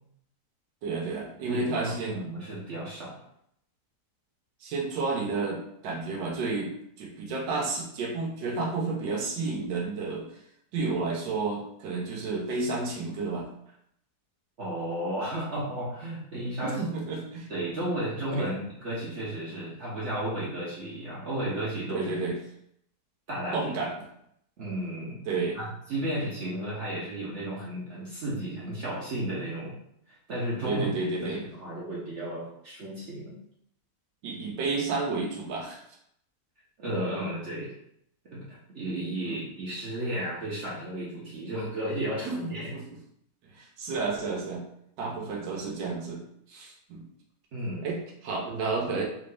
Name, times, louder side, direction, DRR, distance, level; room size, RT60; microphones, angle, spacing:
voice 1, 0.8-2.2 4.6-6.7 7.0-10.2 10.7-13.5 16.6-17.5 18.3-18.5 21.9-22.4 23.5-23.9 25.3-25.6 30.6-31.4 34.2-35.8 39.2-39.4 42.3-42.8 43.5-44.6 45.0-46.2 46.5-47.0 47.8-49.0, right 3 dB, 90° right, 0 dB, 1.4 m, -31 dB
voice 2, 1.5-3.2 14.6-16.9 17.5-22.2 23.3-23.8 24.6-25.2 25.5-29.8 30.1-31.0 31.2-33.4 36.8-37.7 38.2-42.7 47.5-47.9, right 1 dB, 55° right, -6 dB, 0.8 m, -33 dB
3.6 x 2.6 x 3.2 m, 0.73 s
omnidirectional pair, 1.8 m